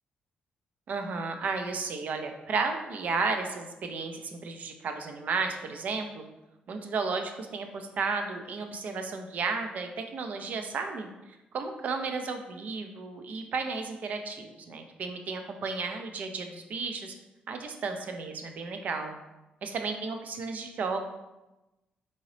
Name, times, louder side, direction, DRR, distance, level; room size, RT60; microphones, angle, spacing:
voice 1, 0.9-6.2 6.7-11.1 11.5-17.1 17.5-19.1 19.6-21.1, right 4 dB, 55° right, 5 dB, 0.5 m, -33 dB
4.0 x 3.8 x 3.2 m, 1.0 s
cardioid pair, 130°, 3 cm